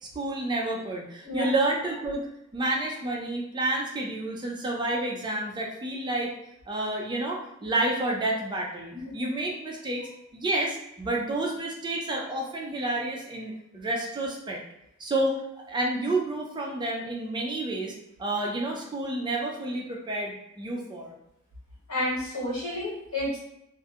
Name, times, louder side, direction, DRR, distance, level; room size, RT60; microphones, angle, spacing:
voice 1, 0.0-2.3 2.5-6.4 6.7-14.6 15.0-15.4 15.7-21.1, right 2 dB, 20° right, -1 dB, 0.3 m, -30 dB
voice 2, 21.9-23.4, left 1 dB, 75° left, -5 dB, 1.1 m, -30 dB
2.3 x 2.1 x 2.7 m, 0.85 s
head